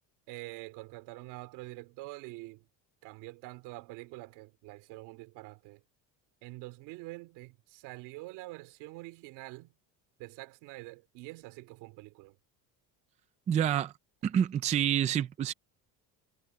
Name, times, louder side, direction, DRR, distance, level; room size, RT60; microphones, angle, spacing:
voice 1, 0.3-2.7 3.0-5.8 6.4-9.7 10.2-12.4, right 21 dB, 85° right, 2.8 m, -46 dB
voice 2, 13.5-13.9 14.2-15.5, right 9 dB, 20° right, 0.4 m, -27 dB
cardioid pair, 180°, 39 cm